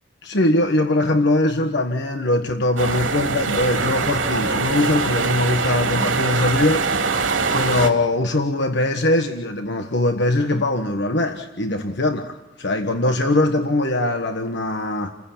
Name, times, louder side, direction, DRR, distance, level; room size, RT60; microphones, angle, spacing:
voice 1, 0.2-7.2 7.5-15.1, left 2 dB, 65° left, 6 dB, 1.4 m, -21 dB
sound 1, 2.8-7.9, right 4 dB, 85° right, 3.2 m, -23 dB
30.0 x 15.5 x 7.3 m, 1.0 s
head